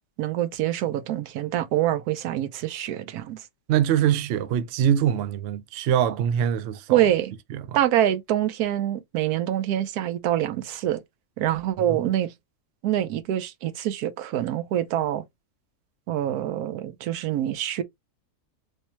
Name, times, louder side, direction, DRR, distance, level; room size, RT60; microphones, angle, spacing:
voice 1, 0.2-3.4 6.9-7.3 7.7-11.0 11.4-12.3 12.8-15.2 16.1-17.8, right 12 dB, 90° right, 1.1 m, -25 dB
voice 2, 3.7-7.0 7.5-7.8, right 9 dB, 70° right, 0.6 m, -23 dB
3.4 x 2.7 x 2.9 m
omnidirectional pair, 1.6 m